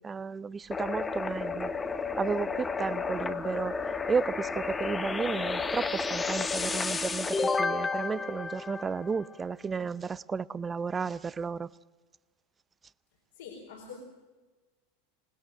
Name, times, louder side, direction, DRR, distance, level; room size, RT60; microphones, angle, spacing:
voice 1, 0.0-1.7 2.2-3.8 4.1-11.7, right 5 dB, 20° right, 0.6 m, -33 dB
sound 1, 0.7-9.4, left 4 dB, 15° left, 1.1 m, -32 dB
voice 2, 13.3-14.0, left 6 dB, 70° left, 4.4 m, -44 dB
26.5 x 20.0 x 6.5 m
hypercardioid pair, 85°, 0 cm